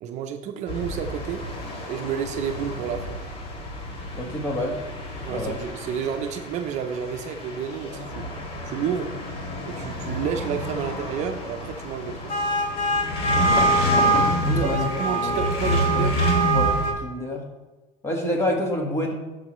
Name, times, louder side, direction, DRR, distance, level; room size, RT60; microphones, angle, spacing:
voice 1, 0.0-1.5 1.9-3.2 5.2-8.3 8.6-9.1 9.7-12.2 14.5-16.2, right 8 dB, 55° right, 6 dB, 0.7 m, -30 dB
sound 1, 0.7-16.9, right 1 dB, 40° left, 1.5 m, -26 dB
voice 2, 4.1-4.8 5.3-5.6 13.3-13.6 14.4-14.9 15.2-15.8 16.5-16.7 17.0-17.4 18.0-19.1, left 1 dB, 20° left, 1 dB, 1.6 m, -28 dB
12.5 x 4.7 x 3.1 m, 1.2 s
cardioid pair, 135°, 15 cm